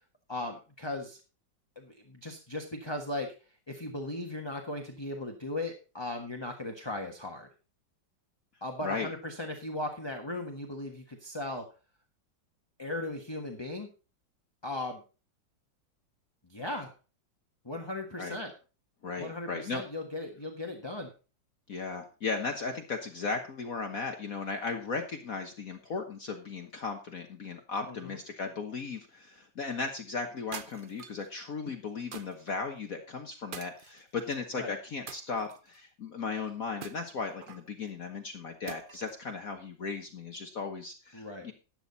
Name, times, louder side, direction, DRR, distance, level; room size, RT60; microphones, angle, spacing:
voice 1, 0.3-1.2 1.7-3.3 3.7-7.5 8.6-11.7 12.8-13.9 14.6-15.0 16.4-16.9 17.6-18.5 19.2-21.1 27.9-28.2 34.6-34.8 41.1-41.4, left 2 dB, 15° left, 2 dB, 1.4 m, -37 dB
voice 2, 19.0-19.8 21.7-41.5, left 4 dB, 50° left, 5 dB, 1.5 m, -36 dB
sound 1, 30.5-31.3 32.1-32.6 33.5-34.3 35.1-35.8 36.8-37.7 38.7-39.2, right 6 dB, 55° right, 0.5 m, -45 dB
12.5 x 9.0 x 4.0 m, 0.33 s
omnidirectional pair, 2.1 m